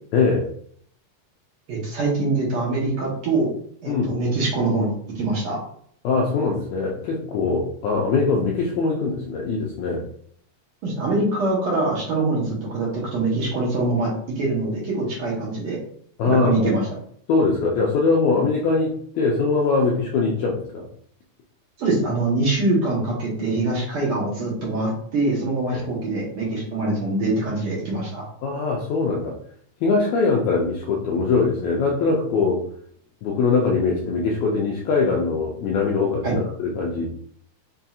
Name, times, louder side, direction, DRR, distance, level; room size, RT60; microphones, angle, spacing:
voice 1, 0.1-0.5 3.9-4.2 6.0-10.0 16.2-16.7 17.3-20.9 25.7-25.8 28.4-29.3 29.8-32.7 33.2-37.2, left 4 dB, 90° left, -2 dB, 1.6 m, -22 dB
voice 2, 1.7-3.5 3.8-5.6 10.8-15.8 16.3-16.8 21.8-28.2 36.2-36.3, right 2 dB, 65° right, -4 dB, 1.4 m, -24 dB
6.0 x 2.7 x 2.4 m, 0.62 s
omnidirectional pair, 3.9 m